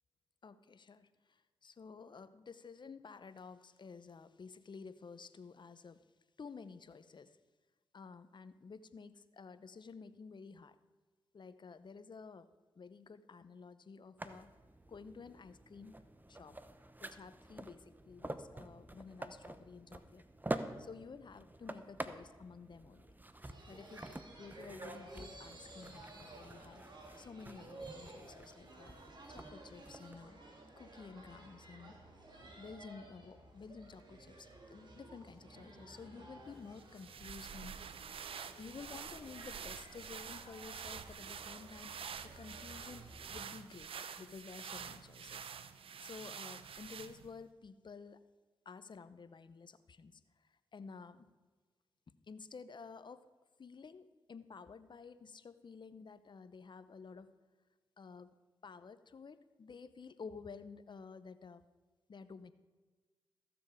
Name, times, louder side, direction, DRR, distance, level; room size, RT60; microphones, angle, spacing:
voice 1, 0.4-6.0 6.4-7.4 7.9-10.8 11.3-12.5 12.8-14.5 14.9-16.0 16.3-16.6 17.0-20.2 20.8-23.1 23.7-26.8 27.2-28.9 29.3-30.4 30.8-32.0 32.6-37.8 38.6-41.9 42.2-45.5 46.0-48.2 48.6-50.2 50.7-51.3 52.1-53.2 53.6-57.3 58.0-58.3 58.6-61.6 62.1-62.5, left 5 dB, 50° left, 13 dB, 0.8 m, -52 dB
sound 1, 14.2-30.2, right 1 dB, 20° right, 0.9 m, -48 dB
sound 2, 23.4-43.3, right 2 dB, 50° right, 2.5 m, -55 dB
sound 3, 36.8-47.4, right 7 dB, 70° right, 0.6 m, -48 dB
14.5 x 7.0 x 5.0 m, 1.3 s
supercardioid pair, 40°, 10 cm